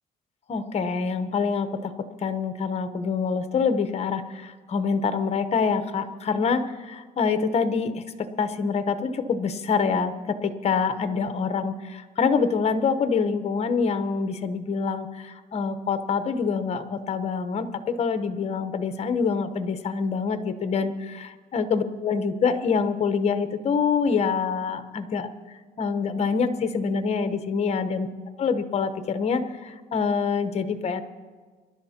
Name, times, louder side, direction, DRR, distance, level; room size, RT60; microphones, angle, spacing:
voice 1, 0.5-1.9 2.2-25.3 25.8-28.1 28.4-31.0, left 5 dB, 40° left, 10 dB, 1.0 m, -26 dB
26.0 x 11.5 x 2.9 m, 1.4 s
cardioid pair, 110°, 17 cm